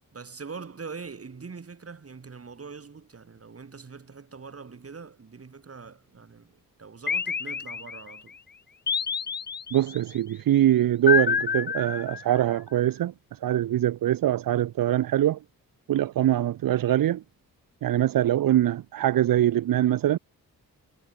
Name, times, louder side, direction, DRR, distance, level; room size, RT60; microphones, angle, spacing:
voice 1, 0.1-8.4, right 5 dB, 40° right, 2.4 m, -43 dB
sound 1, 7.1-8.2 8.9-10.0 11.1-12.5, left 6 dB, 30° left, 0.6 m, -28 dB
voice 2, 9.7-13.1 13.4-15.4 15.9-17.2 17.8-20.2, right 12 dB, 70° right, 0.7 m, -23 dB
cardioid pair, 60°, 35 cm